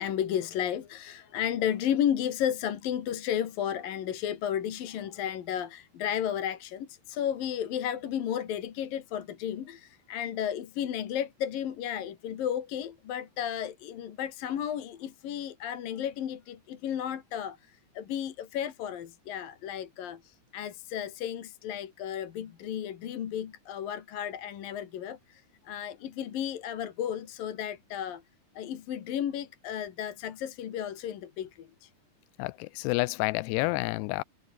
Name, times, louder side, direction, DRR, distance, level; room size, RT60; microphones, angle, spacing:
voice 1, 0.0-28.2 28.5-31.9, left 10 dB, 60° left, 3.4 m, -33 dB
voice 2, 32.4-34.2, left 22 dB, 85° left, 2.6 m, -29 dB
omnidirectional pair, 4.9 m